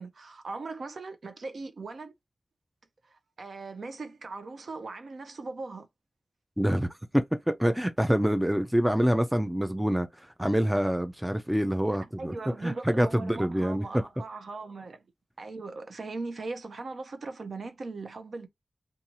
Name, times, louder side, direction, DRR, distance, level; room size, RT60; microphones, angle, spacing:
voice 1, 0.0-2.1 3.0-5.9 12.2-15.0 15.4-18.5, right 3 dB, 60° right, 0.5 m, -39 dB
voice 2, 6.6-10.1 10.4-14.1, equal, 5° right, 0.3 m, -26 dB
2.6 x 2.3 x 2.9 m
wide cardioid pair, 110°, 0 cm